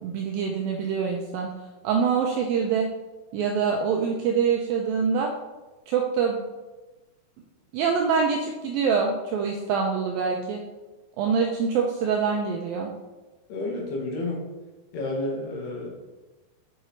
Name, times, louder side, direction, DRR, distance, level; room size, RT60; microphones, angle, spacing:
voice 1, 0.0-1.5 1.8-2.9 3.3-5.3 5.9-6.4 7.7-10.6 11.2-12.9, right 6 dB, 85° right, 2 dB, 2.1 m, -25 dB
voice 2, 13.5-14.4 14.9-15.9, left 2 dB, 70° left, -2 dB, 3.9 m, -30 dB
7.9 x 7.9 x 4.5 m, 1.2 s
omnidirectional pair, 4.9 m